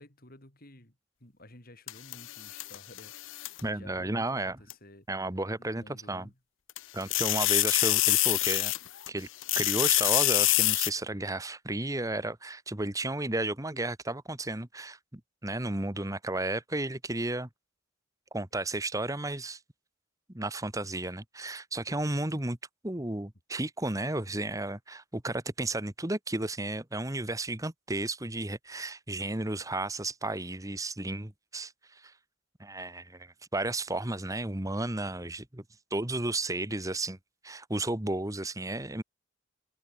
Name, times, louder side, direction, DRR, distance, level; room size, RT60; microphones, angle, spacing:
voice 1, 0.0-5.1 5.6-6.4, left 1 dB, 45° left, 4.5 m, -53 dB
sound 1, 1.9-3.6 4.7-4.8 6.7-9.1 9.4-10.9, left 19 dB, 65° left, 0.5 m, -26 dB
voice 2, 3.6-4.6 5.1-6.3 6.9-8.7 9.1-9.3 9.5-17.5 18.3-19.6 20.3-22.6 22.8-32.1 32.6-35.6 35.9-37.2 37.4-39.0, right 2 dB, 15° right, 1.5 m, -33 dB
head